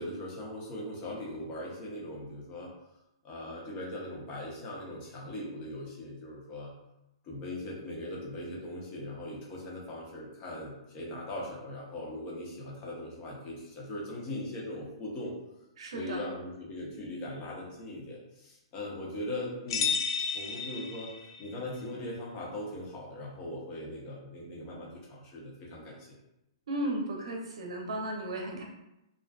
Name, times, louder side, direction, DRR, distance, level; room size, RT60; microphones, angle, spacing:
voice 1, 0.0-2.7 3.2-6.7 7.2-15.3 15.9-19.9 20.3-26.2, left 1 dB, 30° left, -3 dB, 0.7 m, -40 dB
voice 2, 15.8-16.2 26.7-28.6, right 1 dB, 75° right, 1 dB, 0.6 m, -34 dB
sound 1, 19.7-21.5, left 6 dB, 55° left, 0.3 m, -32 dB
2.4 x 2.3 x 2.3 m, 0.88 s
hypercardioid pair, 150°, 3 cm